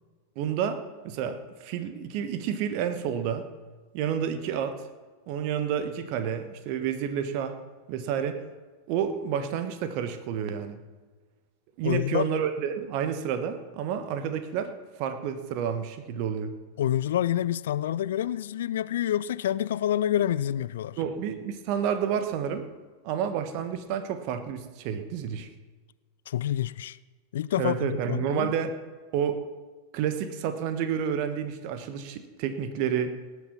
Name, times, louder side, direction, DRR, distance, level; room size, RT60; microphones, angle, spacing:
voice 1, 0.3-3.5 3.9-4.8 5.3-7.6 7.9-8.4 8.9-10.8 11.8-16.5 21.0-22.7 23.0-25.5 27.6-28.7 29.1-29.4 29.9-33.2, right 8 dB, 45° right, 1.3 m, -30 dB
voice 2, 11.8-12.3 16.8-21.0 26.3-27.0 27.3-28.5, left 11 dB, 60° left, 0.4 m, -27 dB
18.5 x 8.3 x 6.0 m
figure-of-eight pair, 90°, 0 cm